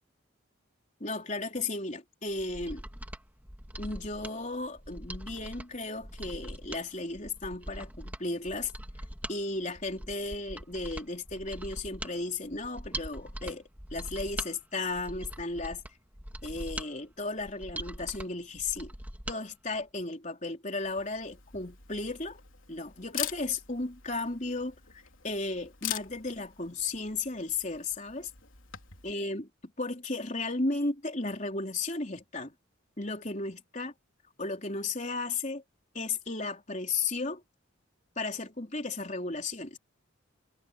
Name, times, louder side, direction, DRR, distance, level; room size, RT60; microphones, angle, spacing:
voice 1, 1.0-2.8 3.8-8.7 9.3-15.8 16.4-18.9 19.3-22.4 22.7-28.3 29.0-29.5 29.8-32.5 33.0-33.9 34.4-35.6 35.9-37.4 38.2-39.8, left 3 dB, 35° left, 3.9 m, -35 dB
Mechanisms, 2.3-19.4 19.7-19.8, right 1 dB, 10° right, 1.7 m, -42 dB
Camera, 20.8-29.1, left 12 dB, 70° left, 3.5 m, -43 dB
head